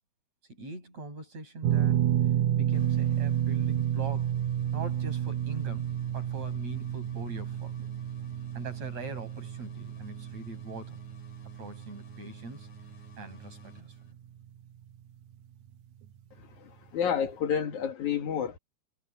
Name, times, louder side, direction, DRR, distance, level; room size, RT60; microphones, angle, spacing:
voice 1, 0.5-2.1 2.5-4.4 4.7-5.9 6.1-7.7 8.5-11.0 11.6-12.7 13.2-13.9, right 2 dB, 65° right, 8.2 m, -42 dB
sound 1, 1.6-13.9 14.1-14.4 16.0-16.1, right 10 dB, 85° right, 2.2 m, -30 dB
sound 2, 2.7-14.4, left 2 dB, 75° left, 5.4 m, -54 dB
voice 2, 16.4-18.6, left 8 dB, 90° left, 3.5 m, -30 dB
omnidirectional pair, 3.3 m